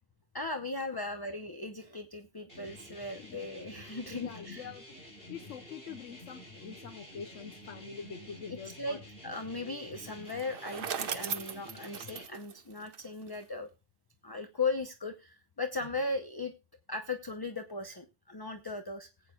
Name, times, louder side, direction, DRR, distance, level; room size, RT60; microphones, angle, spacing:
voice 1, 0.3-4.7 8.6-13.7 14.2-16.5 16.9-19.1, left 3 dB, 25° left, 6 dB, 0.6 m, -37 dB
sound 1, 2.5-12.3, left 1 dB, 45° left, 3.7 m, -50 dB
voice 2, 4.1-4.8 5.3-9.0, left 7 dB, 65° left, 9 dB, 1.1 m, -45 dB
Bicycle, 10.2-13.4, right 7 dB, 50° right, 0.8 m, -38 dB
19.0 x 8.5 x 2.3 m, 0.29 s
omnidirectional pair, 1.4 m